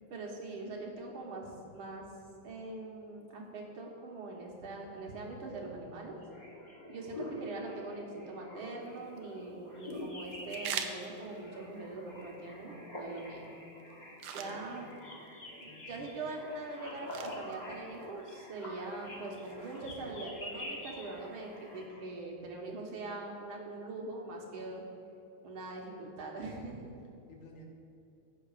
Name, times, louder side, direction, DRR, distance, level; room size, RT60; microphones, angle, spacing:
voice 1, 0.0-2.0 2.4-6.2 6.9-13.5 14.3-14.9 15.6-24.8 25.4-26.9, right 2 dB, 75° right, -1 dB, 2.1 m, -42 dB
sound 1, 6.1-22.0, left 1 dB, 25° left, 1.1 m, -47 dB
sound 2, 8.8-21.8, right 7 dB, 90° right, 1.5 m, -48 dB
voice 2, 14.0-15.0 15.7-16.3 27.3-27.6, left 1 dB, 75° left, 0 dB, 2.1 m, -55 dB
16.0 x 7.7 x 2.4 m, 2.7 s
omnidirectional pair, 2.3 m